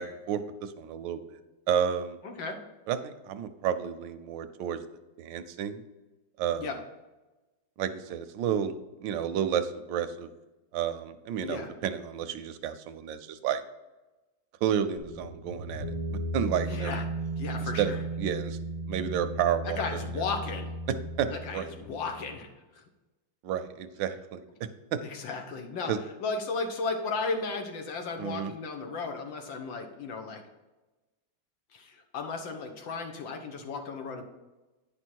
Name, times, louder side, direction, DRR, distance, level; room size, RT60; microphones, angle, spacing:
voice 1, 0.0-1.4 1.7-2.2 2.9-4.8 5.2-5.8 6.4-6.7 7.8-8.7 9.0-10.3 10.7-13.6 14.6-15.9 16.3-17.0 17.8-18.6 18.9-20.0 20.9-21.7 23.4-25.0 25.9-26.0 28.2-28.5, right 8 dB, 80° right, 10 dB, 1.4 m, -31 dB
voice 2, 2.2-2.6 6.6-6.8 11.4-11.7 16.7-17.1 17.4-18.0 19.6-20.7 21.3-22.8 25.0-25.9 26.2-30.4 31.7-34.2, left 4 dB, 85° left, 5 dB, 1.8 m, -35 dB
sound 1, 15.0-22.4, right 1 dB, 60° left, 1.8 m, -36 dB
9.9 x 5.3 x 4.5 m, 1.1 s
omnidirectional pair, 2.0 m